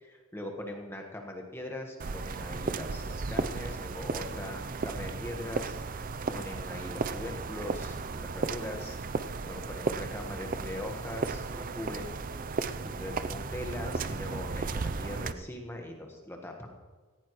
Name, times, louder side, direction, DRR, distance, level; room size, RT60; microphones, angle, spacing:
voice 1, 0.0-5.7 6.3-9.0 9.4-12.2 12.8-16.8, left 1 dB, 10° left, 1 dB, 1.3 m, -41 dB
sound 1, 2.0-15.3, right 4 dB, 40° right, 0.5 m, -35 dB
17.5 x 15.5 x 3.1 m, 1.5 s
head